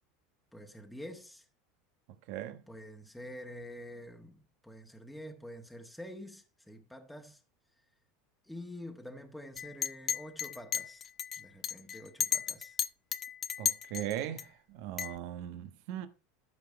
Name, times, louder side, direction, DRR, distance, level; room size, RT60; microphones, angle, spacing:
voice 1, 0.5-1.5 2.7-7.4 8.4-11.1 11.4-12.8, left 1 dB, ahead, 1.5 m, -47 dB
voice 2, 2.3-2.6 13.6-16.1, right 11 dB, 65° right, 1.2 m, -39 dB
Chink clink, 9.6-14.4 15.0-15.2, left 8 dB, 35° left, 0.7 m, -34 dB
13.0 x 5.0 x 4.7 m
supercardioid pair, 110°, 0 cm